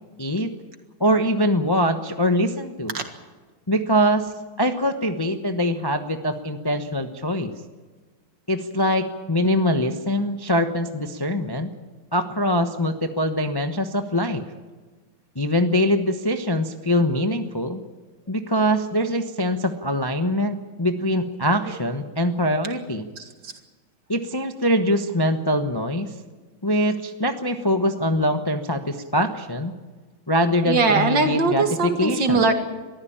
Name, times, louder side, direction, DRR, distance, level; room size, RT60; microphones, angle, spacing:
voice 1, 0.2-0.5 1.0-2.9 3.7-4.3 4.6-7.5 8.5-11.7 12.1-14.5 15.3-17.8 18.3-23.1 24.1-26.1 26.6-29.7 30.3-32.4, equal, 20° left, 7 dB, 0.7 m, -23 dB
voice 2, 23.2-23.5 30.6-32.5, right 3 dB, 65° right, 6 dB, 2.7 m, -21 dB
23.0 x 15.0 x 8.7 m, 1.4 s
omnidirectional pair, 2.2 m